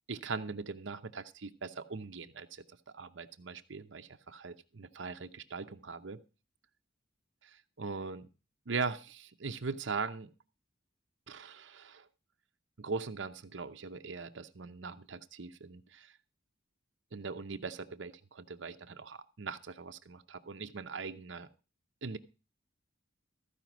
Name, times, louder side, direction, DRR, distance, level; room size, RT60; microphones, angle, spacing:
voice 1, 0.1-2.6 2.9-6.2 7.8-8.2 8.7-10.3 11.3-12.1 12.8-16.1 17.1-21.5 22.0-22.2, right 4 dB, 70° right, 8 dB, 0.8 m, -40 dB
14.0 x 5.0 x 6.1 m, 0.33 s
head